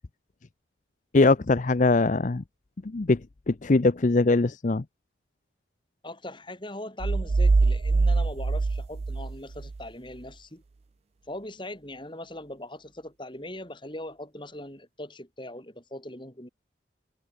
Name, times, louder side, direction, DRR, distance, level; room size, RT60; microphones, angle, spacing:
voice 1, 1.1-2.4 2.8-4.8, left 3 dB, 40° left, 0.5 m, -22 dB
voice 2, 6.0-10.6 11.3-16.5, left 1 dB, 25° left, 4.0 m, -40 dB
sound 1, 7.0-9.8, right 3 dB, 30° right, 0.3 m, -23 dB
head